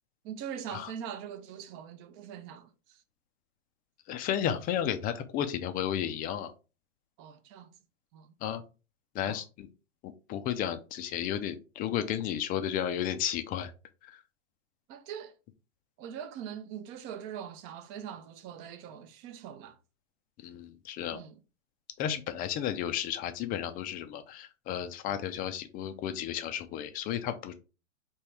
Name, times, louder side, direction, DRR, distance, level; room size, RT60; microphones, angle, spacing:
voice 1, 0.2-3.0 7.2-7.7 8.1-8.3 9.2-9.4 14.9-15.4 16.0-19.8 21.1-21.4, right 8 dB, 35° right, 0.7 m, -42 dB
voice 2, 4.1-6.5 8.4-8.6 9.1-9.7 10.0-13.7 14.0-14.2 20.4-21.2 22.0-27.5, left 10 dB, 25° left, 0.5 m, -33 dB
4.5 x 3.0 x 3.4 m
hypercardioid pair, 115°, 38 cm